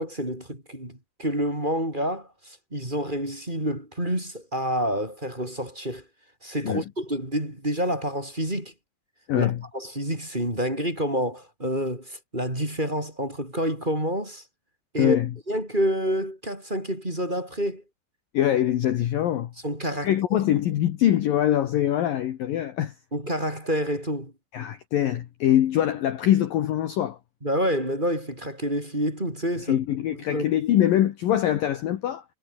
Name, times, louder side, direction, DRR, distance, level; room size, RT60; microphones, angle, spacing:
voice 1, 0.0-6.0 6.4-8.7 9.4-14.4 14.9-15.2 15.5-17.8 19.6-20.1 23.1-24.3 27.4-29.8 30.1-30.5, equal, 10° right, 5.4 m, -28 dB
voice 2, 9.3-9.6 15.0-15.3 18.3-19.5 20.0-22.9 24.5-27.2 29.7-32.2, left 12 dB, 60° left, 2.7 m, -23 dB
omnidirectional pair, 5.1 m